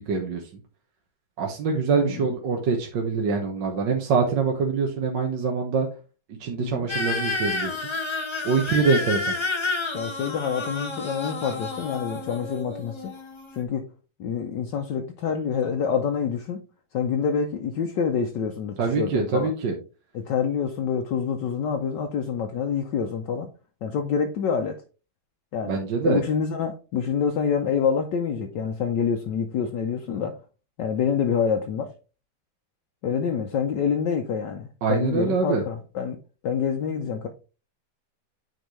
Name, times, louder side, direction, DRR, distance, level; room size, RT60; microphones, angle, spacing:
voice 1, 0.1-0.4 1.4-5.9 6.4-7.7 8.4-9.3 18.8-19.8 25.7-26.2 34.8-35.6, right 4 dB, 65° right, 1.7 m, -24 dB
voice 2, 2.0-2.3 6.6-6.9 9.9-13.1 13.5-13.9 14.2-16.6 16.9-19.5 20.1-23.5 23.8-24.8 25.5-25.8 26.0-30.4 30.8-31.9 33.0-36.2 36.4-37.3, left 6 dB, 70° left, 1.4 m, -27 dB
sound 1, 6.9-13.6, left 3 dB, 45° left, 0.3 m, -30 dB
9.3 x 4.5 x 3.1 m
omnidirectional pair, 2.1 m